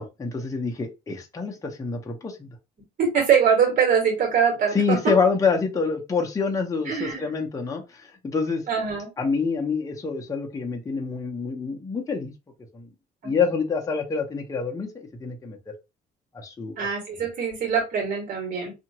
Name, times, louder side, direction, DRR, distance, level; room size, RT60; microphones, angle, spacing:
voice 1, 0.0-2.5 4.7-8.6 9.2-12.3 12.7-12.9 13.2-15.7 16.3-16.8, left 5 dB, 20° left, 1 dB, 0.7 m, -26 dB
voice 2, 3.0-5.1 6.9-7.3 8.7-9.1 13.2-13.3 16.8-18.7, right 7 dB, 55° right, 1 dB, 1.7 m, -23 dB
2.8 x 2.5 x 2.9 m, 0.25 s
cardioid pair, 110°, 17 cm